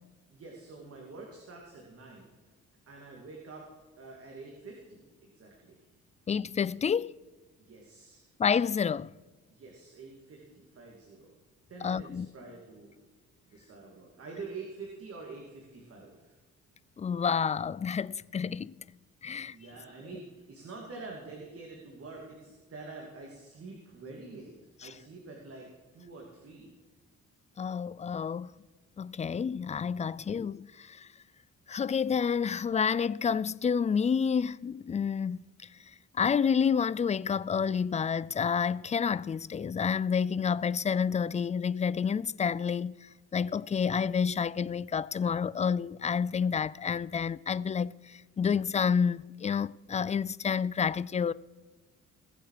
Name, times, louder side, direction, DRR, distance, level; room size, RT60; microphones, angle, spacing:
voice 1, 0.3-2.5 2.9-3.7 4.0-5.8 7.6-8.3 9.5-11.3 11.7-13.0 13.4-16.3 19.3-24.5 24.8-25.7 25.9-26.7 30.0-30.2, right 3 dB, 50° right, 2.9 m, -47 dB
voice 2, 6.3-7.1 8.4-9.1 11.8-12.3 17.0-18.7 19.2-19.6 24.8-24.9 27.6-28.5 29.0-31.1 31.7-35.5 36.1-51.3, left 6 dB, 25° left, 0.4 m, -29 dB
21.0 x 7.6 x 5.0 m
cardioid pair, 90°, 30 cm